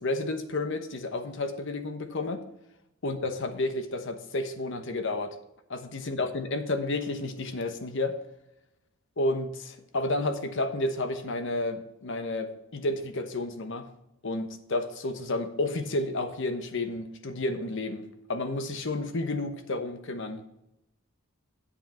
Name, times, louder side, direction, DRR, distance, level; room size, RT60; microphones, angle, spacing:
voice 1, 0.0-2.4 3.0-5.3 5.7-8.2 9.2-13.9 14.2-18.0 18.3-20.4, left 2 dB, 60° left, 9 dB, 1.0 m, -31 dB
8.7 x 7.6 x 4.4 m, 0.87 s
head